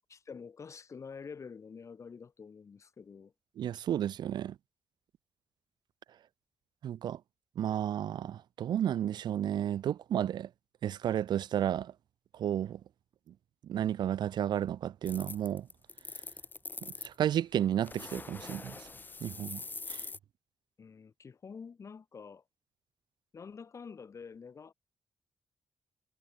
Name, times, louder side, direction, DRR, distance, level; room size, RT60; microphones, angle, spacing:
voice 1, 0.1-3.3 20.8-22.4 23.3-24.7, left 5 dB, 45° left, 1.7 m, -47 dB
voice 2, 3.6-4.6 6.8-7.2 7.6-10.5 10.8-11.9 12.3-12.8 13.6-15.7 17.0-18.9 19.2-19.6 19.9-20.1, right 10 dB, 80° right, 0.5 m, -32 dB
sound 1, 15.1-17.2 17.8-20.2, left 3 dB, 25° left, 1.2 m, -43 dB
wide cardioid pair, 120°, 7 cm